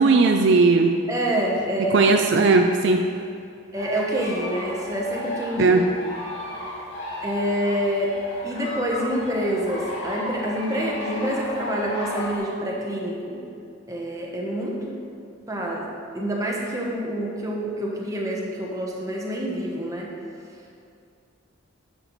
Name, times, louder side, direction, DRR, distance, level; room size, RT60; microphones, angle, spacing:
voice 1, 0.0-1.0 1.9-3.0 5.6-5.9, right 3 dB, 60° right, 4 dB, 0.4 m, -17 dB
voice 2, 1.1-2.0 3.7-5.8 7.2-8.2 8.4-13.4 13.9-15.0 15.5-15.9 16.1-20.1, equal, 15° right, -2 dB, 0.9 m, -27 dB
sound 1, 3.7-12.4, left 1 dB, 65° left, 1.9 m, -35 dB
10.5 x 6.7 x 3.1 m, 2.4 s
head